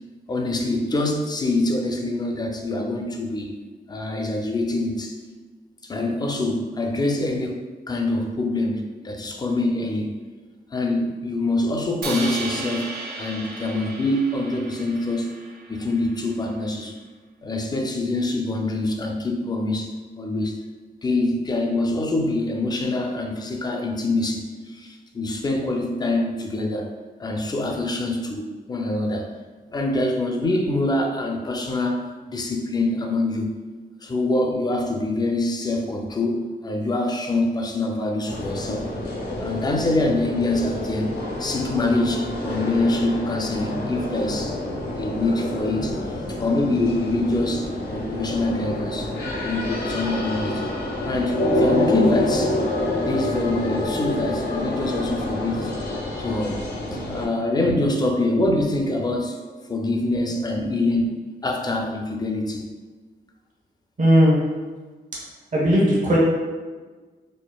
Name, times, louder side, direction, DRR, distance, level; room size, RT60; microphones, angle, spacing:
voice 1, 0.3-3.6 3.9-5.2 5.8-7.6 7.9-10.2 10.7-12.9 13.2-15.3 15.7-17.0 17.4-20.6 21.0-26.9 27.2-29.3 29.7-33.6 34.0-38.9 39.4-44.6 44.9-49.2 49.4-50.6 51.1-52.6 53.0-55.7 56.2-59.4 59.7-62.7, left 2 dB, 25° left, 2 dB, 0.4 m, -25 dB
Crash cymbal, 12.0-16.2, right 3 dB, 75° right, 0.5 m, -35 dB
sound 1, 38.3-57.3, left 1 dB, 75° left, 0.7 m, -27 dB
voice 2, 64.0-64.4 65.5-66.2, equal, 50° right, -5 dB, 0.9 m, -17 dB
4.1 x 2.4 x 2.2 m, 1.4 s
wide cardioid pair, 135°, 17 cm